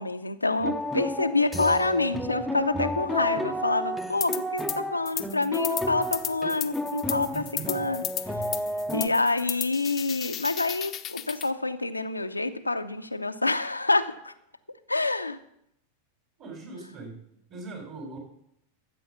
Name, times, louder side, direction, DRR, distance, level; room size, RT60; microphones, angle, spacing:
voice 1, 0.0-8.0 8.9-14.3 14.9-15.4, left 3 dB, 85° left, 8 dB, 0.7 m, -27 dB
sound 1, 0.6-9.1, left 1 dB, ahead, 0.9 m, -32 dB
sound 2, 4.2-4.8 5.1-11.5, left 11 dB, 30° left, 0.8 m, -34 dB
voice 2, 7.0-7.9 16.4-17.1 17.5-18.2, right 4 dB, 35° right, 2 dB, 5.0 m, -41 dB
13.5 x 7.9 x 6.8 m, 0.76 s
figure-of-eight pair, 90°, 0 cm